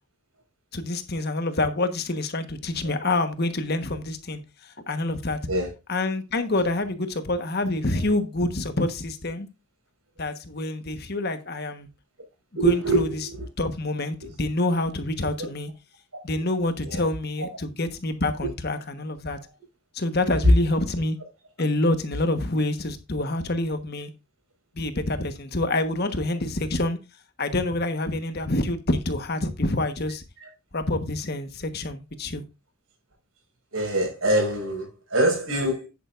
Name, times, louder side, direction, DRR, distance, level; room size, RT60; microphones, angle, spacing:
voice 1, 0.7-5.4 5.9-9.5 10.2-11.9 12.6-13.1 13.6-15.7 16.2-19.4 19.9-21.2 21.6-24.1 24.7-27.0 27.4-30.2 30.7-32.4, left 2 dB, 45° left, 1.2 m, -27 dB
voice 2, 12.5-13.5 15.4-15.5 16.3-16.5 16.8-17.0 17.4-17.5 18.4-18.5 19.4-19.5 30.4-30.5 33.7-35.9, right 2 dB, 70° right, 4.9 m, -25 dB
10.0 x 8.9 x 2.5 m
head